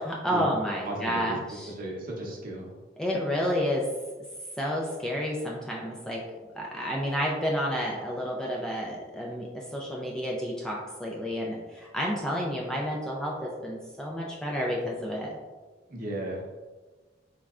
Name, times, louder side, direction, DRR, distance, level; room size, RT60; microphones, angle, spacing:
voice 1, 0.0-1.7 3.0-3.9 4.6-6.2 6.5-15.3, equal, 5° left, -3 dB, 0.3 m, -30 dB
voice 2, 0.8-1.4 1.7-2.7 15.9-16.4, right 1 dB, 50° right, -1 dB, 0.7 m, -35 dB
3.5 x 3.1 x 2.4 m, 1.3 s
head